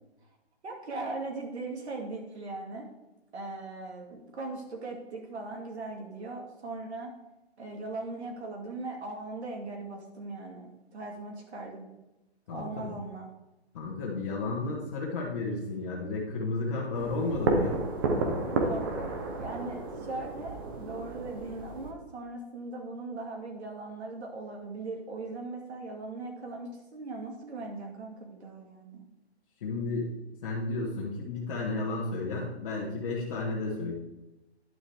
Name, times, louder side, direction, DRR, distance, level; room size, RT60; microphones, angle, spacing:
voice 1, 0.6-2.9 3.3-7.1 7.6-11.9 12.5-13.3 18.5-19.1 19.4-29.0, right 3 dB, 75° right, 0 dB, 2.4 m, -39 dB
voice 2, 12.5-13.0 13.7-17.8 29.6-30.1 30.4-33.9, left 3 dB, 30° left, -6 dB, 1.6 m, -32 dB
sound 1, 16.9-21.9, right 3 dB, 20° right, 0.9 m, -32 dB
11.0 x 7.4 x 3.5 m, 0.98 s
hypercardioid pair, 165°, 33 cm